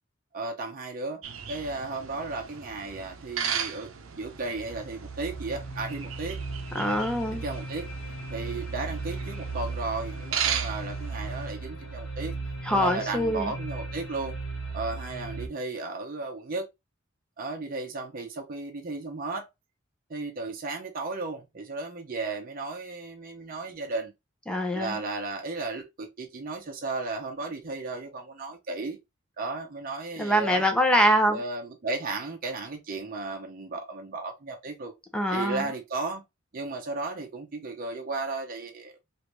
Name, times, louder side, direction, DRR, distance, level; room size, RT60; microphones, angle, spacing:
voice 1, 0.3-1.2 1.5-6.4 7.3-7.9 8.3-12.3 12.7-14.3 14.7-16.7 17.4-19.5 20.1-24.1 24.7-29.0 29.4-30.6 31.3-34.9 35.3-36.2 36.5-39.0, right 3 dB, 45° right, 0.6 m, -34 dB
sound 1, 1.2-11.5, right 8 dB, 85° right, 0.6 m, -37 dB
sound 2, 4.1-15.5, right 3 dB, 70° left, 1.2 m, -37 dB
voice 2, 6.7-7.4 12.6-13.5 24.5-25.0 30.2-31.4 35.1-35.6, equal, 5° left, 0.6 m, -24 dB
3.3 x 2.5 x 2.8 m
head